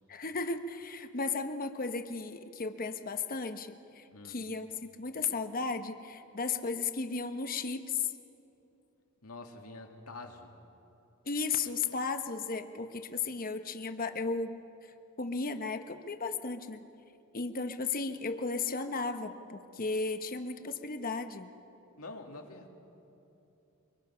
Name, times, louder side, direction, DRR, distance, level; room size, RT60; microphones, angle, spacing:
voice 1, 0.1-8.1 11.2-14.5 15.2-16.8 17.3-21.5, left 4 dB, 40° left, 7 dB, 1.0 m, -35 dB
voice 2, 9.2-10.5 22.0-22.7, left 2 dB, 90° left, 2 dB, 2.2 m, -46 dB
24.0 x 24.0 x 5.7 m, 2.8 s
head